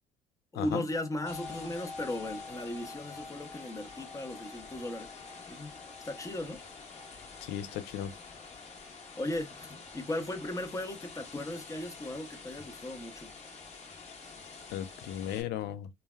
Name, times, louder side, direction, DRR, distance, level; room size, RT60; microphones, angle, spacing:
voice 1, 0.5-5.1 5.5-5.7 6.0-6.6 9.2-13.3, left 1 dB, 20° left, 0.7 m, -37 dB
sound 1, 0.9-10.1 10.8-10.9, left 3 dB, 65° left, 1.0 m, -49 dB
sound 2, 1.3-15.4, left 4 dB, 40° left, 0.9 m, -48 dB
voice 2, 7.4-8.1 14.7-15.9, left 10 dB, 80° left, 0.5 m, -36 dB
3.2 x 2.2 x 2.2 m
cardioid pair, 110°, 17 cm